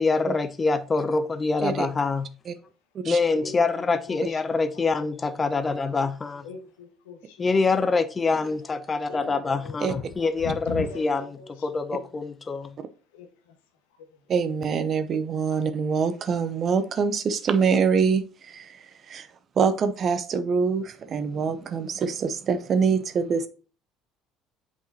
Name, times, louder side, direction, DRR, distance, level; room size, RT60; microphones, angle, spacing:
voice 1, 0.0-2.3 3.0-6.4 7.4-11.2 11.6-12.8, left 4 dB, 30° left, 0.5 m, -25 dB
voice 2, 3.3-5.7 6.4-7.8 9.1-12.2 13.1-13.6 13.9-14.3, left 4 dB, 80° left, 1.3 m, -41 dB
voice 3, 14.3-19.3 19.5-23.5, right 5 dB, 45° right, 0.8 m, -25 dB
8.0 x 4.8 x 2.8 m
hypercardioid pair, 65°, 0 cm